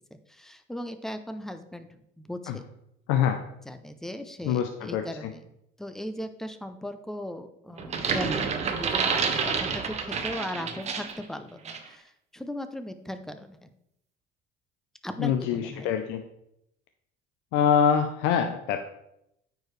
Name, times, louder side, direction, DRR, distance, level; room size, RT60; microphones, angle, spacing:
voice 1, 0.3-1.9 2.2-2.7 3.7-5.5 5.8-8.5 8.8-13.7 15.0-15.9, left 1 dB, ahead, 9 dB, 0.5 m, -38 dB
voice 2, 3.1-3.4 4.4-5.3 15.2-16.2 17.5-18.8, left 8 dB, 85° left, 6 dB, 0.6 m, -25 dB
sound 1, 7.8-11.2 11.6-11.9, right 5 dB, 35° right, 0.9 m, -29 dB
9.2 x 4.7 x 3.2 m, 0.79 s
cardioid pair, 130°, 19 cm